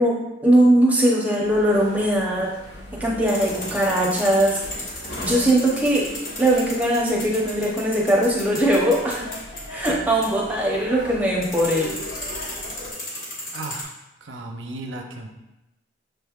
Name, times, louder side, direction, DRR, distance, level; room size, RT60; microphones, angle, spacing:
voice 1, 0.0-2.5 3.0-4.6 5.2-6.1 6.4-9.3 9.7-11.9, right 1 dB, 10° right, -3 dB, 0.7 m, -20 dB
sound 1, 1.4-12.9, left 1 dB, 70° left, 1.0 m, -39 dB
sound 2, 3.3-13.8, left 1 dB, 50° left, 1.3 m, -36 dB
voice 2, 13.5-13.9 14.2-15.3, right 2 dB, 85° right, 3 dB, 0.6 m, -34 dB
6.4 x 3.3 x 2.4 m, 0.96 s
head